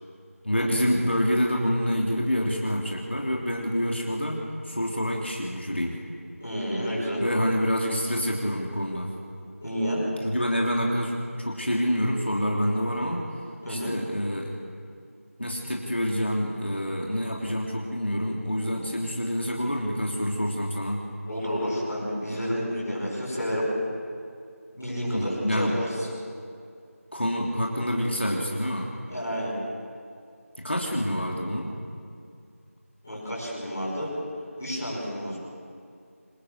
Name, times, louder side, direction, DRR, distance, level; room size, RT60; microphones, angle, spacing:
voice 1, 0.4-6.0 7.2-9.1 10.2-13.2 13.7-14.5 15.4-21.0 25.1-25.8 27.1-28.9 30.6-31.7, equal, 50° left, -1 dB, 3.4 m, -27 dB
voice 2, 6.4-7.2 9.6-10.0 13.6-13.9 21.2-23.7 24.7-26.0 29.1-29.5 33.0-34.1 34.6-35.3, equal, 5° left, -16 dB, 6.7 m, -30 dB
27.0 x 25.5 x 8.2 m, 2.3 s
figure-of-eight pair, 180°, 8 cm